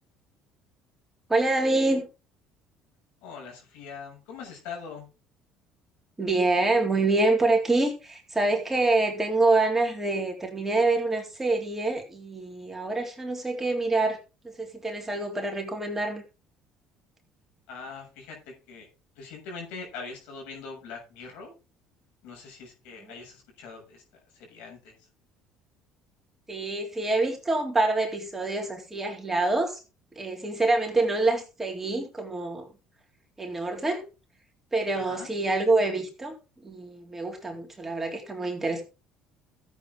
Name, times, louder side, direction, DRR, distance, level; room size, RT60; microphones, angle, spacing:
voice 1, 1.3-2.1 6.2-14.2 14.4-16.2 26.5-29.8 30.2-32.7 33.4-34.0 34.7-36.4 36.6-38.8, right 2 dB, 15° right, 3.6 m, -26 dB
voice 2, 3.2-5.1 17.7-18.9 19.1-21.5 22.2-25.0 34.9-35.3, left 5 dB, 80° left, 6.8 m, -42 dB
14.0 x 8.4 x 3.8 m
supercardioid pair, 90°, 2 cm